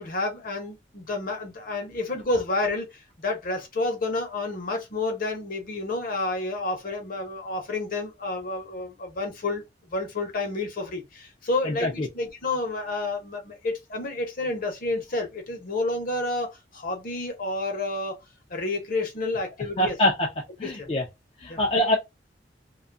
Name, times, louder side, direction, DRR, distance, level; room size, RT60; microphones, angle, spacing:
voice 1, 0.0-18.2 18.5-20.0 20.6-20.9 21.5-21.6, left 2 dB, 50° left, 0.9 m, -30 dB
voice 2, 11.6-12.1 19.8-20.3 20.6-21.0 21.4-22.0, left 1 dB, 30° left, 0.5 m, -24 dB
2.6 x 2.3 x 2.5 m
head